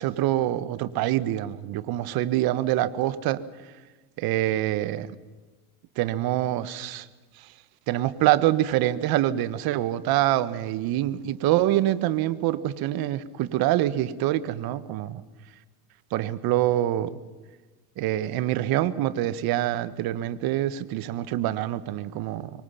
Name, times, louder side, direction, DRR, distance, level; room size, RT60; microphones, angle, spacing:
voice 1, 0.0-3.4 4.2-5.1 6.0-7.1 7.9-15.2 16.1-17.1 18.0-22.5, right 14 dB, 50° right, 15 dB, 1.5 m, -25 dB
25.5 x 23.5 x 5.8 m, 1.3 s
supercardioid pair, 105°, 46 cm